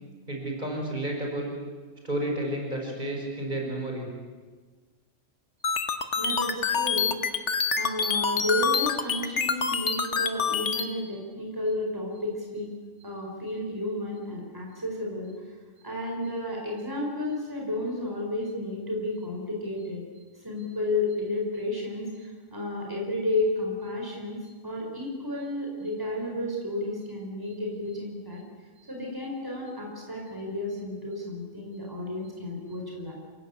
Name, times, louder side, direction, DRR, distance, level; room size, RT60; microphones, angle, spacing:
voice 1, 0.3-1.5 2.0-4.1, right 1 dB, 35° right, 0 dB, 5.2 m, -31 dB
sound 1, 5.6-10.9, left 6 dB, 65° left, 1.6 m, -26 dB
voice 2, 6.1-7.2 7.8-12.7 13.0-15.3 15.8-24.4 24.6-28.4 28.8-33.1, left 1 dB, 15° right, -1 dB, 4.9 m, -32 dB
28.5 x 17.0 x 8.5 m, 1.4 s
omnidirectional pair, 1.3 m